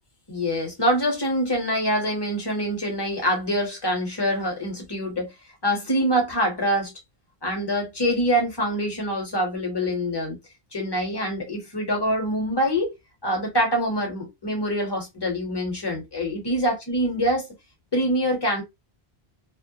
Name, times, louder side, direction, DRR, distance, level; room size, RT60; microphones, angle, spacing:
voice 1, 0.3-5.3 5.6-6.9 7.4-10.4 10.7-12.9 13.2-17.5 17.9-18.6, equal, 25° left, 0.9 m, -25 dB
2.2 x 2.1 x 2.7 m
omnidirectional pair, 1.1 m